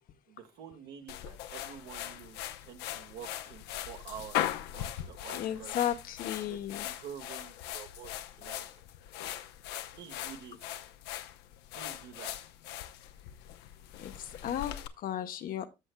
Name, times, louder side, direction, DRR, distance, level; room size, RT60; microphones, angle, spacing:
voice 1, 0.3-5.7 6.4-8.1 8.4-8.7 9.9-10.6 11.7-12.3, right 9 dB, 75° right, 1.7 m, -48 dB
sound 1, 1.1-14.9, left 12 dB, 75° left, 0.8 m, -40 dB
voice 2, 5.3-6.9 14.0-15.7, left 10 dB, 55° left, 0.9 m, -34 dB
14.0 x 6.3 x 2.2 m
cardioid pair, 105°, 17 cm